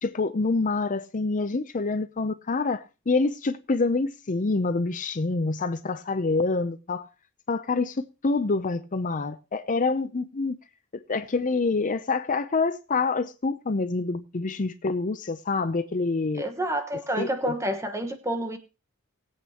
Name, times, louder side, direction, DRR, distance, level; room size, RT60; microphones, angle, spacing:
voice 1, 0.0-7.1 7.5-10.6 10.9-16.4 17.2-17.3, left 3 dB, 35° left, 0.5 m, -26 dB
voice 2, 16.3-18.6, right 1 dB, 15° right, 1.3 m, -29 dB
20.0 x 8.3 x 2.9 m
head